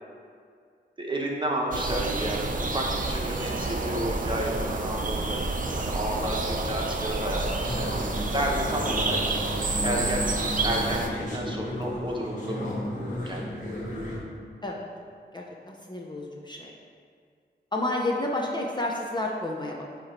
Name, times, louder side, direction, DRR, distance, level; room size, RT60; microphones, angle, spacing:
voice 1, 1.0-9.5 9.8-13.9, right 1 dB, 25° right, -1 dB, 1.0 m, -32 dB
sound 1, 1.7-11.1, right 3 dB, 45° right, 0.6 m, -29 dB
sound 2, 7.6-14.2, left 1 dB, 40° left, 1.5 m, -34 dB
voice 2, 15.3-16.7 17.7-19.8, left 1 dB, 25° left, -2 dB, 0.6 m, -30 dB
8.8 x 3.0 x 4.4 m, 2.2 s
wide cardioid pair, 75°, 19 cm